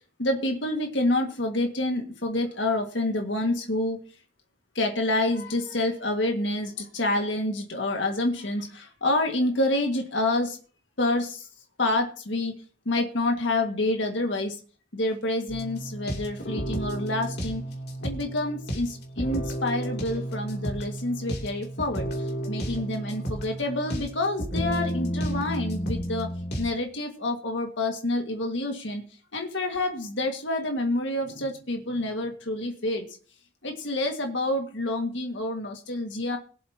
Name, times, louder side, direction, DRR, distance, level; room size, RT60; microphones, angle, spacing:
voice 1, 0.2-4.0 4.8-10.6 11.0-11.5 11.8-12.5 12.9-14.6 14.9-17.6 18.0-22.1 22.5-26.3 26.6-29.0 29.3-33.1 33.6-36.4, left 2 dB, 75° left, 3 dB, 1.9 m, -28 dB
sound 1, 15.5-26.7, equal, 60° left, 2.9 m, -32 dB
22.5 x 7.8 x 2.9 m, 0.40 s
head